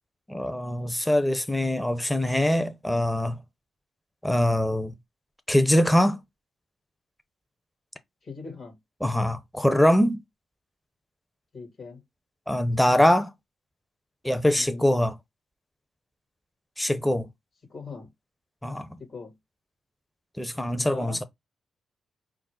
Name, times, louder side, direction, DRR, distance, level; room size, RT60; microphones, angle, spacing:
voice 1, 0.3-3.4 4.2-4.9 5.5-6.2 9.0-10.2 12.5-13.3 14.2-15.1 16.8-17.3 18.6-18.9 20.4-21.2, left 1 dB, 5° left, 0.7 m, -23 dB
voice 2, 8.2-8.8 11.5-12.0 14.6-14.9 17.7-18.1 19.0-19.4 20.7-21.3, left 4 dB, 55° left, 2.9 m, -40 dB
6.0 x 2.1 x 3.8 m
cardioid pair, 65°, 0 cm